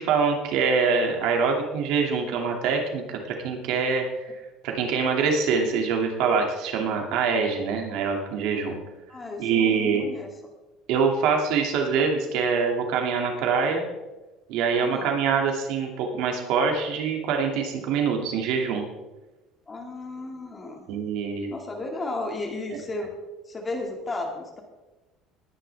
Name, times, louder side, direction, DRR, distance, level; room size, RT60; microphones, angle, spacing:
voice 1, 0.0-4.3 4.6-8.8 9.4-10.1 10.9-13.9 14.5-18.9 20.9-21.5, right 5 dB, 70° right, 2 dB, 2.6 m, -24 dB
voice 2, 9.1-10.3 14.8-15.2 19.7-20.8 21.5-23.1 23.5-24.6, left 2 dB, 20° left, 2 dB, 2.3 m, -34 dB
20.0 x 10.0 x 3.6 m, 1.1 s
cardioid pair, 150°, 0 cm